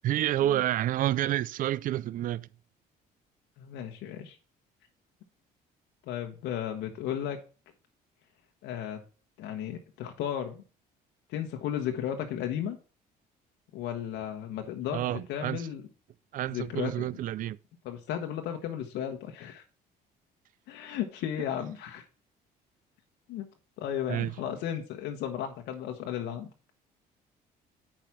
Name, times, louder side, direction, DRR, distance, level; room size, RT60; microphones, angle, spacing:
voice 1, 0.0-2.5 14.9-15.7 16.3-17.6 24.1-24.3, right 13 dB, 55° right, 0.4 m, -29 dB
voice 2, 3.6-4.4 6.1-7.4 8.6-9.0 9.4-10.6 11.3-12.8 13.7-15.8 16.5-16.9 17.8-19.6 20.7-22.0 23.3-23.5 23.8-26.5, left 10 dB, 85° left, 1.1 m, -34 dB
8.8 x 5.0 x 5.8 m
cardioid pair, 110°, 17 cm